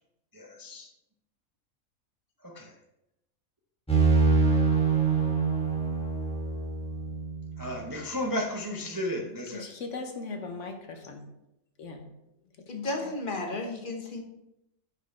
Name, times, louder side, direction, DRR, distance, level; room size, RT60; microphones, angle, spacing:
voice 1, 0.3-0.9 2.4-2.7 7.6-9.6, left 1 dB, 20° right, 0 dB, 0.5 m, -33 dB
sound 1, 3.9-7.6, right 4 dB, 5° left, 1.3 m, -25 dB
voice 2, 9.5-11.3 11.8-12.1 13.0-13.1, left 3 dB, 65° left, 4 dB, 1.2 m, -39 dB
voice 3, 12.7-14.2, left 2 dB, 40° left, 2 dB, 1.2 m, -33 dB
6.2 x 5.6 x 4.2 m, 0.86 s
omnidirectional pair, 1.4 m